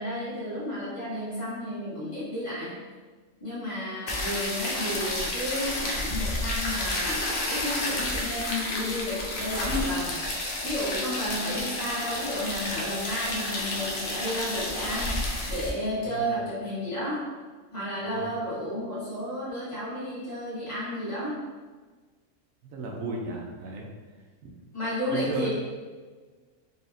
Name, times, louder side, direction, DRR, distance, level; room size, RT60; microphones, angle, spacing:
voice 1, 0.0-2.8 3.4-10.2 10.6-17.3 17.7-21.4 24.7-25.5, equal, 25° left, -11 dB, 1.3 m, -32 dB
sound 1, 4.1-15.7, left 1 dB, 55° left, 0.6 m, -31 dB
voice 2, 16.0-16.3 18.0-18.3 22.7-23.9 24.4-24.5 25.1-25.5, right 2 dB, 80° right, -1 dB, 1.0 m, -35 dB
4.1 x 2.8 x 2.6 m, 1.4 s
omnidirectional pair, 1.4 m